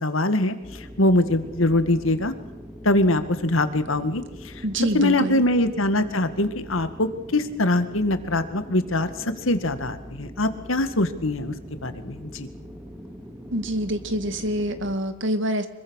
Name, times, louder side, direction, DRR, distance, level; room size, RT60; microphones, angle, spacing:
voice 1, 0.0-2.3 2.8-4.5 4.9-11.5 11.8-12.5, left 1 dB, 75° left, 10 dB, 2.0 m, -23 dB
sound 1, 0.6-15.0, equal, 10° right, 2.4 m, -42 dB
voice 2, 4.6-5.4 13.5-15.7, right 1 dB, 65° right, 9 dB, 2.3 m, -26 dB
25.5 x 23.0 x 6.5 m, 0.93 s
head